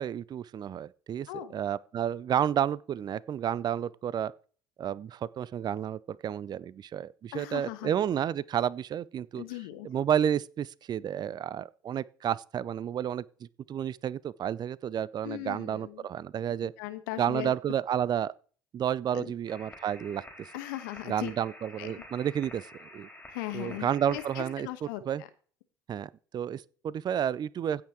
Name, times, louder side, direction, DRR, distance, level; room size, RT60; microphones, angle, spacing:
voice 1, 0.0-4.3 4.8-9.4 9.8-13.2 13.7-16.7 17.2-18.3 18.7-20.5 21.0-23.1 23.5-24.7 25.1-25.2 25.9-27.8, right 9 dB, 40° right, 0.5 m, -31 dB
voice 2, 7.3-7.9 9.4-9.9 15.2-16.1 16.6-17.5 19.1-19.3 20.5-21.3 21.8-21.9 23.3-25.3, left 15 dB, 75° left, 1.2 m, -38 dB
sound 1, 19.5-24.5, left 1 dB, 15° left, 4.6 m, -49 dB
15.5 x 5.9 x 4.5 m
hypercardioid pair, 65°, 11 cm